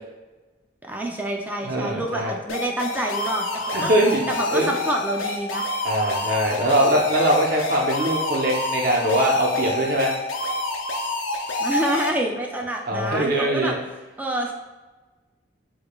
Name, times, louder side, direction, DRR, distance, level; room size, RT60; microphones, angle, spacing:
voice 1, 0.8-3.9 4.3-5.6 11.6-13.7 14.2-14.5, right 1 dB, 10° right, 1 dB, 0.3 m, -27 dB
voice 2, 1.6-2.3 3.7-4.2 4.5-4.7 5.8-10.1 12.9-13.8, right 1 dB, 50° right, -2 dB, 0.7 m, -22 dB
sound 1, 2.5-12.1, left 2 dB, 85° left, 0.5 m, -28 dB
6.6 x 2.3 x 2.3 m, 1.2 s
head